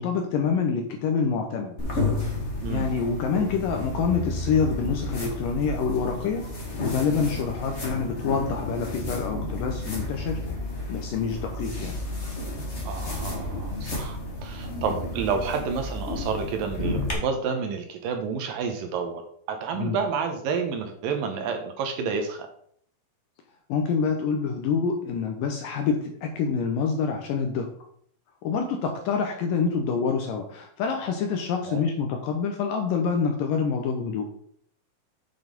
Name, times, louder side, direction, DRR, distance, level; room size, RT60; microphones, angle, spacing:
voice 1, 0.0-1.8 2.7-6.5 6.8-10.4 10.9-11.9 19.7-20.0 23.7-27.7 28.4-34.3, left 5 dB, 75° left, 3 dB, 2.2 m, -26 dB
sound 1, 1.8-17.1, left 2 dB, 25° left, 1.5 m, -31 dB
voice 2, 12.8-19.2 19.5-22.5 31.7-31.8, right 5 dB, 75° right, 5 dB, 2.4 m, -30 dB
8.1 x 5.5 x 5.3 m, 0.62 s
omnidirectional pair, 4.5 m